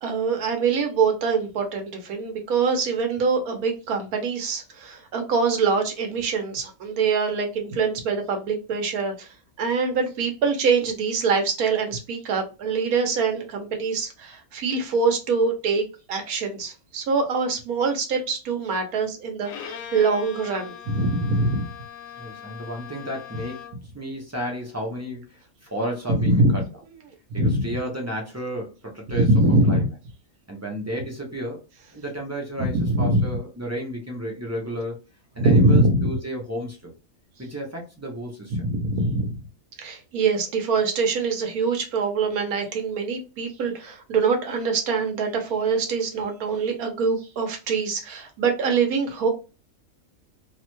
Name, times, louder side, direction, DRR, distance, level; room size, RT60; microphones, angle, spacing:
voice 1, 0.0-21.7 26.1-26.5 27.3-27.6 29.2-29.9 32.7-33.3 35.4-36.1 38.6-39.4 39.8-49.3, right 3 dB, 90° right, 1.3 m, -24 dB
Bowed string instrument, 19.4-23.9, left 8 dB, 75° left, 1.0 m, -40 dB
voice 2, 22.2-23.6 23.9-26.7 27.3-30.0 30.5-31.6 31.9-35.0 35.3-36.9 37.4-38.6, equal, 25° right, 0.3 m, -32 dB
3.1 x 2.1 x 2.9 m
omnidirectional pair, 1.5 m